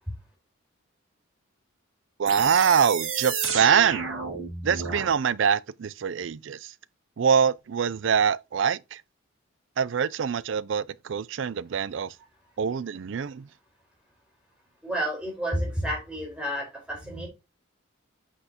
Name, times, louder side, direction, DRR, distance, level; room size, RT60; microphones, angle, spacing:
voice 1, 2.2-4.1 4.6-6.7 7.2-9.0 9.8-12.1 12.6-13.5, right 7 dB, 60° right, 0.4 m, -24 dB
sound 1, 2.3-5.1, right 6 dB, 75° right, 2.3 m, -31 dB
voice 2, 14.8-17.3, equal, 5° right, 4.4 m, -30 dB
7.8 x 6.1 x 2.9 m
head